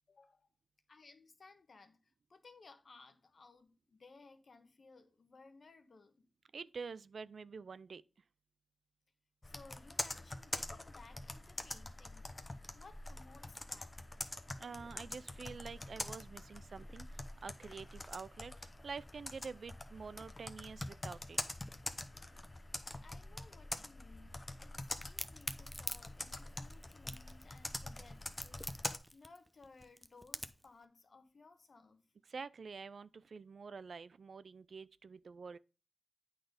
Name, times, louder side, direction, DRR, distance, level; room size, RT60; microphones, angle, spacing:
voice 1, 0.1-0.5 0.9-6.3 9.4-14.0 23.0-24.8 25.0-28.8 29.1-32.0, left 3 dB, 65° left, 1.1 m, -60 dB
voice 2, 6.5-8.0 14.6-21.4 32.3-35.6, right 5 dB, 75° right, 0.3 m, -48 dB
Computer keyboard, 9.4-29.0, left 2 dB, 30° left, 0.9 m, -45 dB
Crack, 25.0-30.7, equal, 5° right, 0.6 m, -45 dB
8.7 x 4.0 x 5.1 m
cardioid pair, 55°, 0 cm